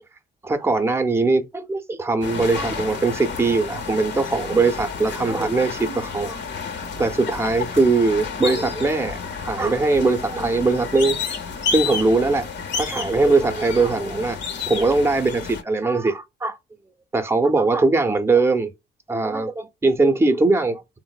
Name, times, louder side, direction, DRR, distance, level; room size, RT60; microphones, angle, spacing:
voice 1, 0.4-6.4 7.0-11.2 11.7-12.5 12.7-14.4 14.7-16.6 17.1-18.7 19.1-21.0, right 3 dB, 10° right, 0.5 m, -21 dB
sound 1, 2.2-15.6, left 5 dB, 65° left, 0.7 m, -31 dB
3.6 x 2.0 x 2.3 m
cardioid pair, 90°, 20 cm